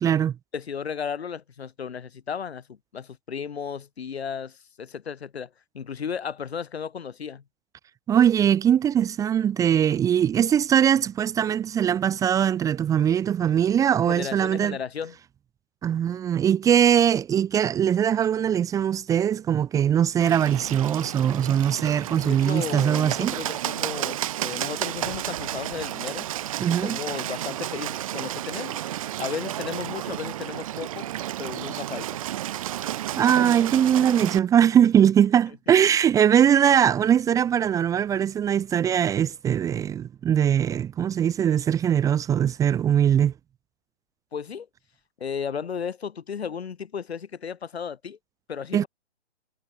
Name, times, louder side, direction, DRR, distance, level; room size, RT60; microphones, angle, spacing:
voice 1, 0.0-0.3 8.1-14.8 15.8-23.4 26.6-27.0 33.2-43.3 48.7-48.8, right 9 dB, 10° right, 1.9 m, -21 dB
voice 2, 0.5-5.5 5.7-7.4 14.1-15.2 22.2-26.3 26.7-28.8 29.2-31.1 31.4-32.1 44.3-44.7 45.2-48.2 48.5-48.9, left 7 dB, 65° left, 6.1 m, -34 dB
Bird, 20.2-34.4, right 13 dB, 30° right, 1.0 m, -32 dB
hypercardioid pair, 155°, 34 cm